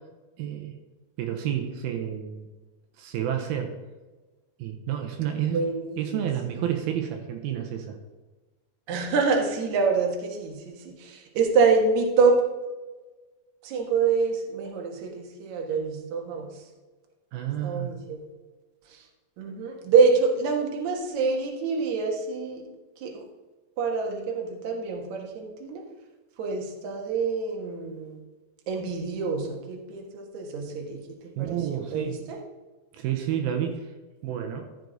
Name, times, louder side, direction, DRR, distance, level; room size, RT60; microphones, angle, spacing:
voice 1, 0.4-0.8 1.2-2.5 3.0-3.7 4.6-5.6 6.0-8.0 17.3-17.9 31.4-32.2 32.9-33.9 34.2-34.7, right 10 dB, 80° right, 4 dB, 2.7 m, -30 dB
voice 2, 5.5-6.3 8.9-12.4 13.6-16.5 17.6-18.2 19.4-22.6 23.0-23.1 23.8-25.8 26.4-28.2 28.7-31.0 31.4-32.4, right 4 dB, 60° right, 1 dB, 2.5 m, -26 dB
14.0 x 6.5 x 4.0 m, 1.2 s
omnidirectional pair, 4.3 m